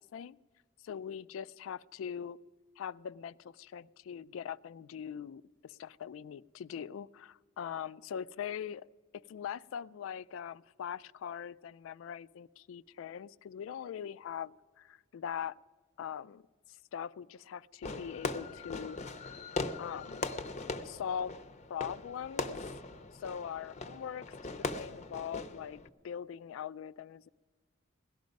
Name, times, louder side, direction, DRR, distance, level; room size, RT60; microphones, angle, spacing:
voice 1, 0.8-2.4 2.8-8.9 9.1-15.6 16.0-16.4 16.7-19.0 19.2-19.3 19.8-20.3 20.8-21.4 21.7-22.6 23.1-27.3, left 8 dB, 80° left, 19 dB, 0.3 m, -41 dB
Fireworks, 17.8-25.9, left 3 dB, 35° left, 0.6 m, -40 dB
17.5 x 11.5 x 5.2 m, 1.5 s
head